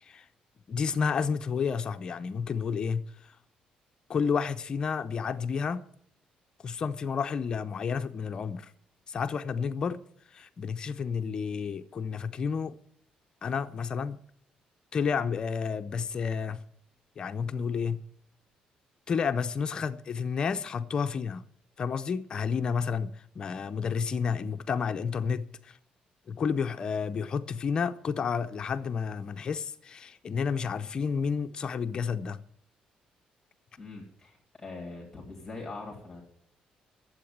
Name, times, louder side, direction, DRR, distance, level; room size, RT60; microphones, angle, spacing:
voice 1, 0.7-3.4 4.1-5.9 6.6-8.7 9.1-10.0 10.3-12.7 13.4-14.2 14.9-16.6 17.2-18.0 19.1-21.4 21.8-25.8 26.3-32.4, left 6 dB, 35° left, 0.5 m, -31 dB
voice 2, 33.8-36.2, left 3 dB, 10° left, 2.7 m, -42 dB
12.0 x 7.9 x 9.1 m
cardioid pair, 170°, 2 cm